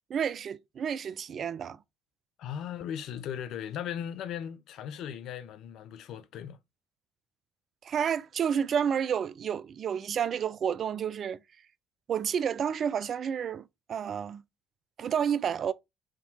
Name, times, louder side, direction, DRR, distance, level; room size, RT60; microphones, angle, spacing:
voice 1, 0.1-1.8 7.8-11.4 12.1-14.4 15.0-15.7, right 8 dB, 50° right, 0.3 m, -30 dB
voice 2, 2.4-6.6, left 9 dB, 65° left, 0.5 m, -37 dB
3.6 x 2.8 x 4.1 m
hypercardioid pair, 60°, 0 cm